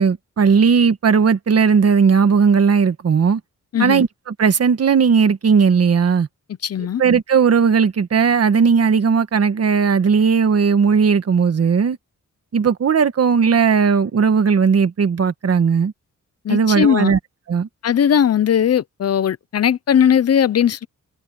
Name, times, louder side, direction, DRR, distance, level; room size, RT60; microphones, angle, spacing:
voice 1, 0.0-3.4 3.8-6.3 7.0-12.0 12.5-15.9 16.5-17.2 17.5-17.7, right 6 dB, 50° right, 1.6 m, -16 dB
voice 2, 3.7-4.0 6.6-7.0 16.4-17.1 17.8-20.9, left 9 dB, 50° left, 0.7 m, -18 dB
wide cardioid pair, 140°, 32 cm